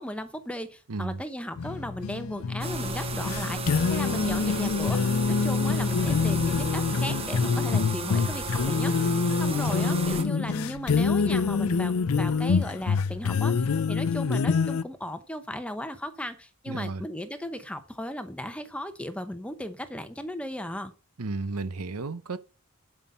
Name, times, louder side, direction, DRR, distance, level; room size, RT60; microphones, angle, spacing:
voice 1, 0.0-8.9 9.4-20.9, left 1 dB, 5° left, 0.8 m, -36 dB
voice 2, 0.9-1.2 16.7-17.0 21.2-22.4, right 3 dB, 90° right, 0.8 m, -33 dB
sound 1, 1.6-14.8, left 5 dB, 75° left, 0.5 m, -26 dB
sound 2, 2.6-10.2, right 4 dB, 25° right, 1.1 m, -35 dB
11.0 x 5.7 x 5.5 m
head